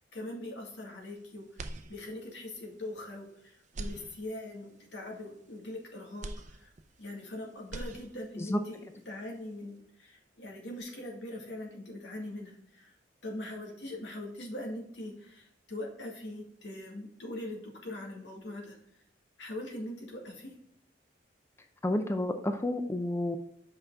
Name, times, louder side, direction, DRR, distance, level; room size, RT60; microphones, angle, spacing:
voice 1, 0.1-6.7 7.0-12.9 13.2-18.8 19.4-20.6, left 1 dB, 85° left, 1 dB, 2.0 m, -42 dB
sound 1, 1.5-2.5 2.9-3.0 3.6-4.7 6.2-7.3 7.6-8.5, right 2 dB, 45° right, 0.6 m, -43 dB
voice 2, 21.8-23.4, left 1 dB, 15° left, 7 dB, 0.5 m, -30 dB
5.7 x 5.6 x 3.7 m, 0.74 s
head